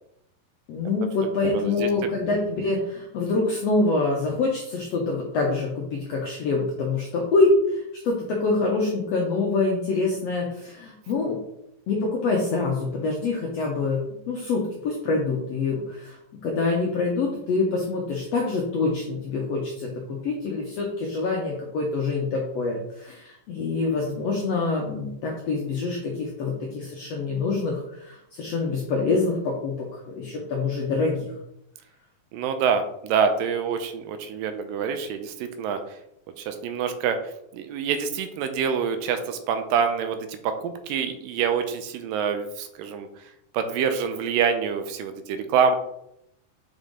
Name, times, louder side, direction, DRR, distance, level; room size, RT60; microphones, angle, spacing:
voice 1, 0.7-11.4 11.9-16.2 16.4-31.3, left 3 dB, 80° left, -1 dB, 1.5 m, -25 dB
voice 2, 1.5-1.9 32.3-35.8 36.4-43.1 43.5-45.8, right 6 dB, 80° right, 8 dB, 2.2 m, -26 dB
5.8 x 5.2 x 3.7 m, 0.80 s
omnidirectional pair, 4.1 m